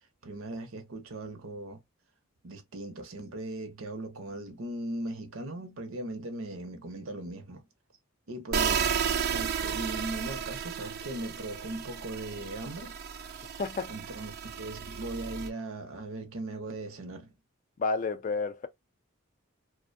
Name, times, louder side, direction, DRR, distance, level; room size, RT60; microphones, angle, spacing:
voice 1, 0.2-1.8 2.4-7.7 8.3-9.0 9.3-13.0 13.3-13.6 13.9-17.3, right 2 dB, 70° right, 0.7 m, -39 dB
sound 1, 8.5-15.5, right 7 dB, 45° right, 0.3 m, -33 dB
voice 2, 13.6-13.9 17.8-18.7, left 4 dB, 35° left, 0.3 m, -30 dB
2.5 x 2.1 x 2.5 m
head